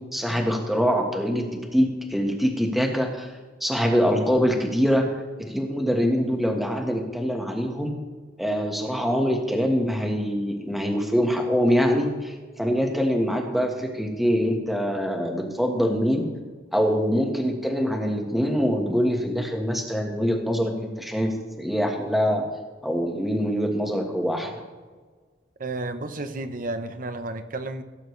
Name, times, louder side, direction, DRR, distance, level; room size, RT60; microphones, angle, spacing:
voice 1, 0.1-1.5 1.7-3.3 3.6-7.9 8.4-16.2 16.7-22.4 22.8-24.5, equal, ahead, 1 dB, 1.4 m, -24 dB
voice 2, 25.6-27.8, right 2 dB, 45° right, 9 dB, 0.8 m, -32 dB
17.5 x 8.9 x 3.2 m, 1.4 s
head